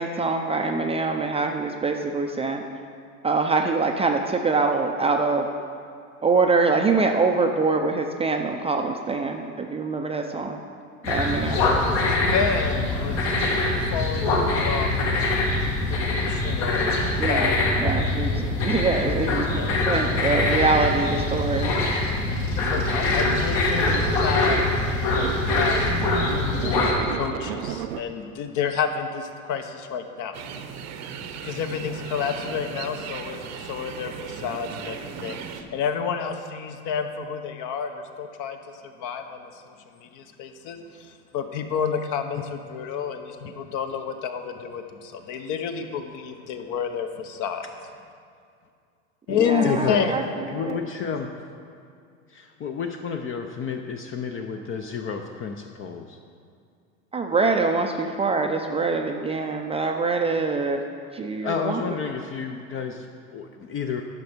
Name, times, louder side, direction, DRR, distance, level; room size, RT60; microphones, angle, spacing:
voice 1, 0.0-2.6 3.2-5.5 6.2-10.6 11.1-11.7 17.2-21.8 49.3-50.2 50.5-50.8 57.1-60.8 61.1-61.8, right 4 dB, 15° right, 3 dB, 0.5 m, -24 dB
sound 1, 11.0-26.9, left 2 dB, 70° left, 2.2 m, -23 dB
voice 2, 11.6-13.4 13.9-15.2 15.9-16.0 16.3-17.0 17.3-18.1 19.5-20.1 22.6-24.7 25.1-25.3 25.5-25.9 26.2-30.4 31.4-38.6 38.8-47.6 49.3-50.2, left 7 dB, 50° left, 7 dB, 0.9 m, -30 dB
sound 2, 22.8-24.8 25.1-28.0, right 12 dB, 85° right, 0.6 m, -34 dB
sound 3, 30.3-35.6, right 7 dB, 45° right, 0.8 m, -37 dB
voice 3, 49.6-50.1 50.5-51.3 52.3-56.2 61.4-64.0, left 6 dB, 30° left, 4 dB, 0.6 m, -31 dB
10.5 x 6.0 x 5.1 m, 2.3 s
hypercardioid pair, 100°, 40 cm